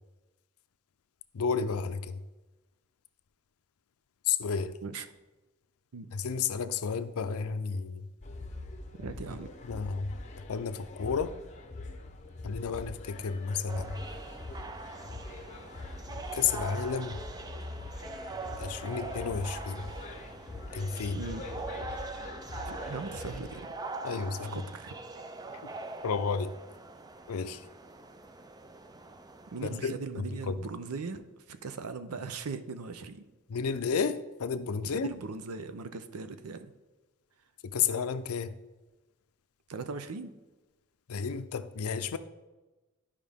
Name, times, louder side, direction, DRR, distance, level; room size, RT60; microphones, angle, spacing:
voice 1, 1.3-2.2 4.3-4.8 6.1-8.1 9.7-10.1 10.5-11.3 12.4-14.0 16.3-17.2 18.6-19.8 20.7-21.2 24.0-24.6 26.0-26.5 27.3-27.6 29.6-30.5 33.5-35.1 37.6-38.6 41.1-42.2, left 6 dB, 80° left, 11 dB, 0.5 m, -32 dB
sound 1, 8.2-23.6, left 2 dB, 30° left, 0.7 m, -43 dB
voice 2, 9.0-9.5 21.1-21.5 22.7-23.6 24.5-24.9 29.5-31.2 31.5-33.2 34.9-36.7 39.7-40.3, right 4 dB, 85° right, 10 dB, 0.6 m, -39 dB
sound 2, 13.7-29.8, right 3 dB, 15° right, 0.3 m, -43 dB
11.0 x 5.0 x 3.5 m, 1.1 s
head